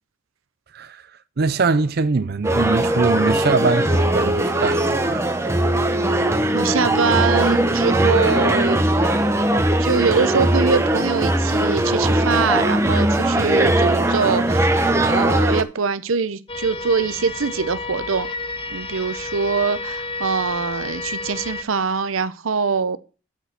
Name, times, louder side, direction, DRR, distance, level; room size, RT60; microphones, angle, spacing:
voice 1, 0.7-1.1 1.4-5.3, right 4 dB, 50° right, 0.5 m, -22 dB
sound 1, 2.4-15.6, right 1 dB, 15° right, 0.9 m, -19 dB
voice 2, 6.5-8.9 9.8-18.3 18.7-23.0, right 5 dB, 85° right, 0.7 m, -23 dB
sound 2, 16.5-21.6, left 3 dB, 25° left, 0.8 m, -31 dB
8.2 x 6.1 x 7.7 m
head